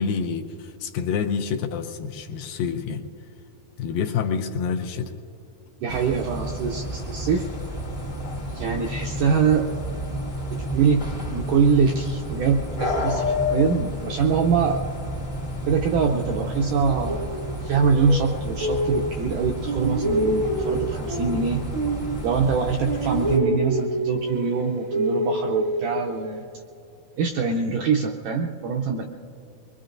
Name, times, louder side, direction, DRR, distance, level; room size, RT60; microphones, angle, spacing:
voice 1, 0.0-3.0 3.8-5.1, left 6 dB, 80° left, 4 dB, 2.2 m, -27 dB
voice 2, 5.8-7.5 8.5-9.7 10.5-14.8 15.7-17.3 17.6-21.6 22.2-26.4 27.2-29.0, right 5 dB, 80° right, 1 dB, 1.8 m, -24 dB
sound 1, 5.9-23.4, equal, 45° left, 0.8 m, -31 dB
sound 2, 16.6-19.3 19.6-22.6 22.8-26.4, right 1 dB, 65° right, 1.1 m, -27 dB
24.0 x 22.0 x 2.6 m, 2.8 s
omnidirectional pair, 4.4 m